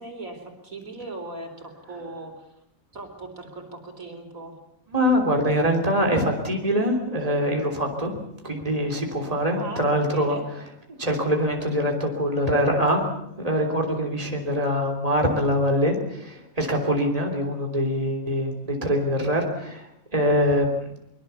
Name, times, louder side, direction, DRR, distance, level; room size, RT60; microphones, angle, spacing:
voice 1, 0.0-2.5 2.9-4.6 9.6-10.4, right 2 dB, 90° right, 4 dB, 4.4 m, -38 dB
voice 2, 4.9-8.1 8.4-10.4 11.0-13.1 13.4-20.9, equal, 25° right, 2 dB, 3.5 m, -24 dB
23.5 x 23.0 x 7.0 m, 0.77 s
omnidirectional pair, 1.4 m